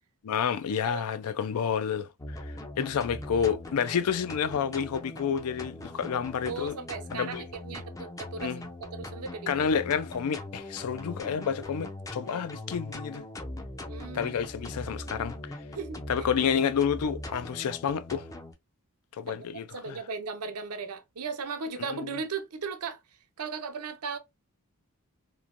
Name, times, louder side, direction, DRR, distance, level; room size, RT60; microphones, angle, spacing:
voice 1, 0.2-6.8 7.1-7.5 8.4-8.7 9.5-13.2 14.1-15.4 16.1-18.3 19.2-20.0, left 7 dB, 75° left, 0.4 m, -29 dB
sound 1, 2.2-18.5, left 1 dB, 15° left, 0.4 m, -41 dB
voice 2, 6.4-8.5 8.9-9.5 13.9-14.4 15.8-16.0 19.3-19.5 19.7-23.0 23.4-24.2, right 5 dB, 80° right, 0.6 m, -36 dB
3.0 x 2.1 x 2.4 m
head